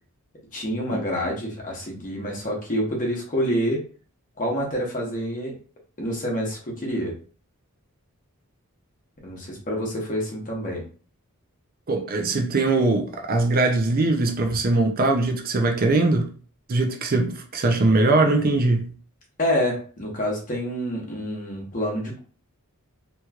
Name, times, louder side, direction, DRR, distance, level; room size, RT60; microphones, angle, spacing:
voice 1, 0.5-3.8 4.4-5.6 6.0-7.1 9.2-10.8 19.4-22.2, equal, 35° left, 1.0 m, -27 dB
voice 2, 11.9-16.3 16.7-18.9, right 2 dB, 40° right, 0.5 m, -21 dB
3.0 x 2.9 x 2.3 m
head